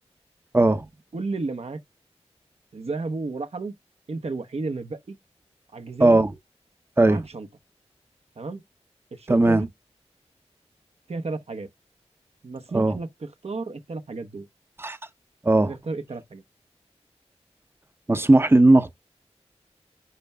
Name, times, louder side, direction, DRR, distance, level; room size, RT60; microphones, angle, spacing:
voice 1, 0.5-0.8 6.0-6.3 7.0-7.2 9.3-9.6 12.7-12.9 14.8-15.0 15.4-15.8 18.1-18.9, right 2 dB, 20° right, 0.8 m, -17 dB
voice 2, 1.1-1.8 2.7-3.7 4.1-5.2 5.7-6.2 7.0-7.5 8.4-8.6 9.1-9.7 11.1-11.7 12.4-14.5 15.7-16.4, right 3 dB, 65° right, 1.0 m, -32 dB
11.0 x 4.6 x 2.3 m
cardioid pair, 50°, 11 cm